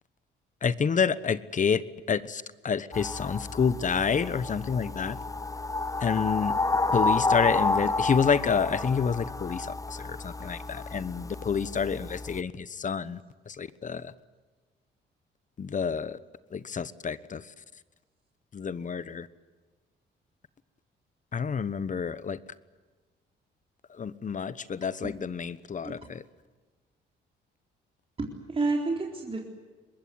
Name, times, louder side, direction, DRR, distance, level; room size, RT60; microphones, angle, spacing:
voice 1, 0.6-1.8 2.1-5.2 6.0-6.5 6.9-13.2 13.5-14.1 15.6-16.2 16.5-17.4 18.5-19.3 21.3-22.4 24.0-26.2, left 6 dB, 40° left, 16 dB, 1.2 m, -28 dB
sound 1, 2.9-12.4, left 3 dB, 15° left, 0.9 m, -30 dB
voice 2, 28.2-29.4, right 3 dB, 30° right, -1 dB, 4.1 m, -30 dB
23.5 x 21.0 x 9.5 m, 1.3 s
cardioid pair, 90°, 20 cm